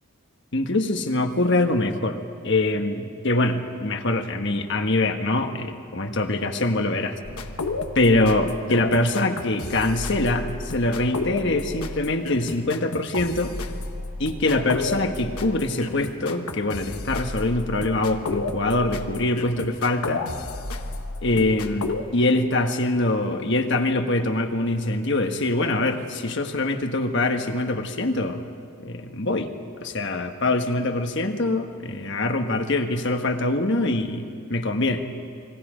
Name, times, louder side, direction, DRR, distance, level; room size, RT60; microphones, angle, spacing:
voice 1, 0.5-2.2 2.4-7.2 7.9-13.5 14.2-20.2 21.2-28.4 28.8-29.5 29.8-35.1, left 2 dB, 55° left, 6 dB, 1.3 m, -24 dB
sound 1, 7.2-22.0, left 3 dB, 85° left, 1.3 m, -32 dB
29.5 x 21.5 x 5.1 m, 2.5 s
head